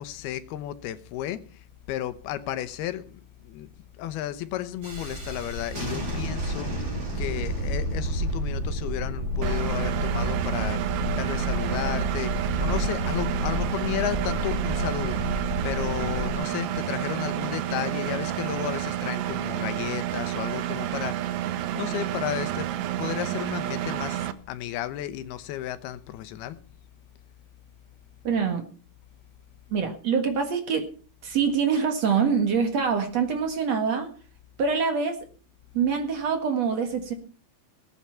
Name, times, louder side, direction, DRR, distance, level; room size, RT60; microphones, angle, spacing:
voice 1, 0.0-3.7 4.0-10.8 11.2-21.4 21.7-22.7 23.0-26.6, left 12 dB, 90° left, 3.0 m, -33 dB
Thunderstorm, 4.8-16.3, right 1 dB, 30° right, 5.2 m, -30 dB
Engine, 9.4-24.3, right 12 dB, 85° right, 1.5 m, -30 dB
voice 2, 28.2-28.7 29.7-30.9 31.2-34.1 34.6-35.2 35.7-37.1, right 6 dB, 50° right, 2.4 m, -25 dB
19.0 x 8.8 x 5.7 m
omnidirectional pair, 4.4 m